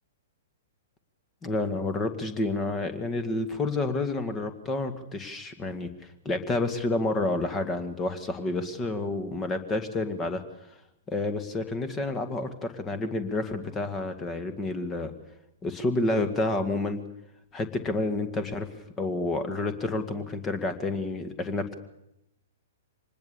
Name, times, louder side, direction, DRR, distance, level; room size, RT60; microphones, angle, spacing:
voice 1, 1.4-5.9 6.3-10.4 11.1-15.1 15.6-17.0 17.5-18.7 19.0-21.7, left 2 dB, 20° left, 9 dB, 2.1 m, -29 dB
25.0 x 20.0 x 7.0 m, 0.83 s
figure-of-eight pair, 110°, 0 cm